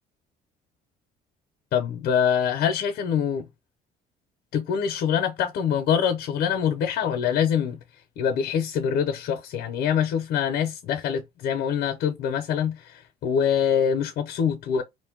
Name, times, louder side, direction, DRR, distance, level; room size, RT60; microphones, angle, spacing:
voice 1, 1.7-3.5 4.5-7.8 8.2-14.8, left 8 dB, 70° left, 0.6 m, -24 dB
2.5 x 2.1 x 3.7 m
cardioid pair, 110°, 17 cm